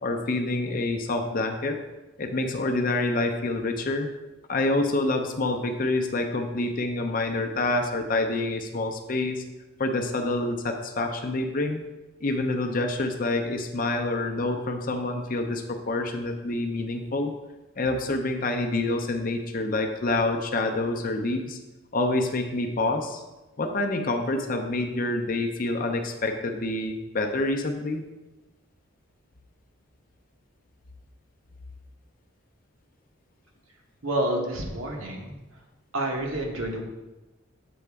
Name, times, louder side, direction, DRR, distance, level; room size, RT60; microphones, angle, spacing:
voice 1, 0.0-1.8 2.2-4.1 4.5-9.4 9.8-11.8 12.2-17.3 17.8-21.6 21.9-23.2 23.6-28.0, left 2 dB, 40° left, 4 dB, 0.6 m, -27 dB
voice 2, 34.0-35.4 35.9-36.9, right 1 dB, 75° right, 0 dB, 1.2 m, -29 dB
7.7 x 4.1 x 3.5 m, 1.1 s
head